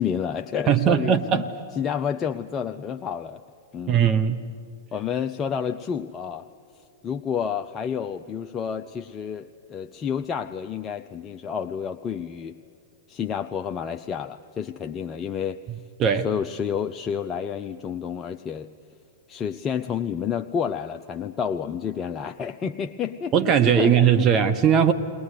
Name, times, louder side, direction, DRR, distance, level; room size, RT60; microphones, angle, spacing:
voice 1, 0.0-1.4 1.8-3.4 3.7-4.0 4.9-6.5 7.0-12.6 13.1-15.6 16.2-18.7 19.3-24.3, left 7 dB, 25° left, 7 dB, 0.6 m, -30 dB
voice 2, 0.7-1.5 3.9-4.4 16.0-16.3 23.3-24.9, right 8 dB, 30° right, 8 dB, 1.0 m, -19 dB
20.5 x 20.5 x 9.6 m, 2.3 s
figure-of-eight pair, 100°, 0 cm